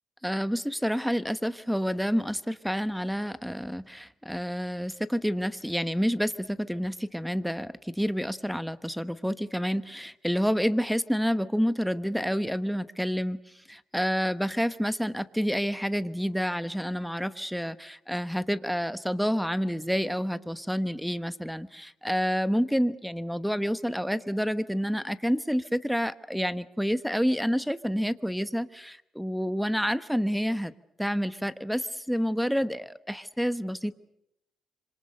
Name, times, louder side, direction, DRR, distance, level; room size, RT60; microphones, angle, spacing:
voice 1, 0.2-13.4 13.7-30.7 31.0-33.9, equal, ahead, 14 dB, 1.2 m, -29 dB
27.0 x 26.0 x 6.7 m, 0.81 s
cardioid pair, 90°, 0 cm